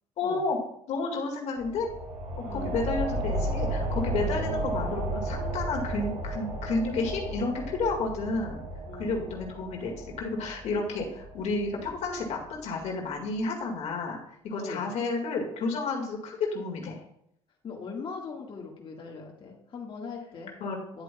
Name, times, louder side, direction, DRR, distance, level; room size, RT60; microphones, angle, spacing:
voice 1, 0.2-0.6 0.9-1.9 2.4-8.6 9.0-14.2 14.4-17.0 20.6-20.8, left 3 dB, 60° left, 1 dB, 1.8 m, -31 dB
sound 1, 1.6-12.8, right 1 dB, 65° right, 2.3 m, -34 dB
voice 2, 2.4-2.8 4.2-4.7 8.9-9.2 14.5-14.9 17.6-20.5 20.9-21.0, left 4 dB, 45° left, -2 dB, 1.6 m, -40 dB
9.9 x 7.7 x 2.3 m, 0.75 s
supercardioid pair, 80°, 13 cm